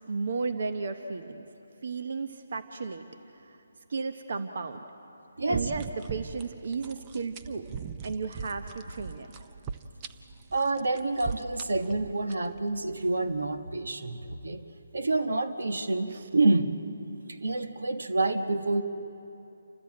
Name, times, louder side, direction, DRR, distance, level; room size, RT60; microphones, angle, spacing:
voice 1, 0.1-1.5 1.8-3.0 3.3-3.6 3.9-4.8 5.5-7.7 8.0-9.3 16.1-16.2, right 4 dB, 60° right, 8 dB, 1.0 m, -34 dB
voice 2, 5.4-5.7 10.5-14.6 14.9-16.8 17.3-18.8, right 2 dB, 80° right, 7 dB, 1.3 m, -28 dB
sound 1, 5.5-13.6, right 6 dB, 20° right, 0.6 m, -41 dB
28.5 x 13.5 x 8.6 m, 2.8 s
hypercardioid pair, 160°, 0 cm